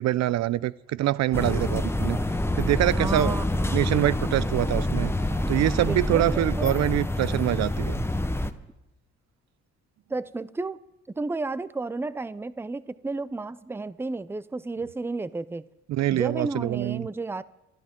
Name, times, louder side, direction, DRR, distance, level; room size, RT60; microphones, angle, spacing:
voice 1, 0.0-2.2 2.6-3.3 3.7-5.1 5.5-8.0 15.9-17.1, right 14 dB, 65° right, 0.4 m, -25 dB
sound 1, 1.3-8.5, left 1 dB, 10° left, 0.9 m, -27 dB
voice 2, 3.0-3.8 5.8-6.8 10.1-10.8 11.2-15.6 16.1-17.4, right 3 dB, 10° right, 0.5 m, -32 dB
27.5 x 12.0 x 3.7 m
cardioid pair, 90°, 30 cm